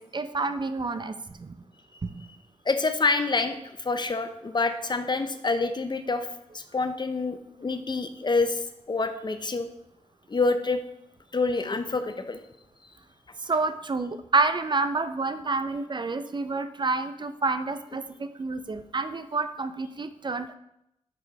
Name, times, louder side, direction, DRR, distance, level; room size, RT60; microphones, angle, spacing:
voice 1, 0.0-1.6 2.1-2.2 13.4-20.5, right 3 dB, 40° right, 10 dB, 0.5 m, -29 dB
voice 2, 2.7-6.3 6.5-8.6 8.9-9.7 10.3-10.8 11.3-12.4, left 3 dB, 35° left, 9 dB, 0.7 m, -27 dB
6.0 x 5.2 x 4.7 m, 0.80 s
cardioid pair, 50°, 13 cm